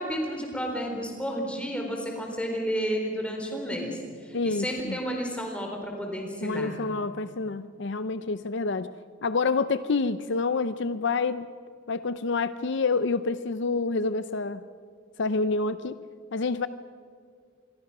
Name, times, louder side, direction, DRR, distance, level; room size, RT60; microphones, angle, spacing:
voice 1, 0.0-6.7, equal, 5° left, 1 dB, 4.2 m, -31 dB
voice 2, 4.3-5.0 6.4-8.9 9.2-11.5 11.9-14.6 15.2-16.0 16.3-16.7, left 4 dB, 60° left, 13 dB, 0.6 m, -28 dB
27.0 x 22.5 x 6.1 m, 2.2 s
head